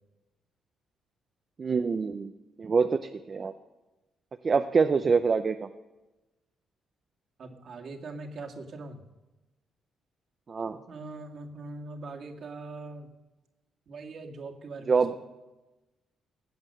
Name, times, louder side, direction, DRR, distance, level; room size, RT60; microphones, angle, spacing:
voice 1, 1.6-2.3 2.6-3.0 3.3-3.5 4.4-5.7 10.5-10.8 14.9-15.1, right 5 dB, 40° right, 8 dB, 0.6 m, -25 dB
voice 2, 7.4-9.0 10.9-13.1 13.9-15.1, right 3 dB, 55° right, 2 dB, 1.9 m, -41 dB
19.0 x 7.9 x 6.6 m, 1.1 s
cardioid pair, 90°, 0 cm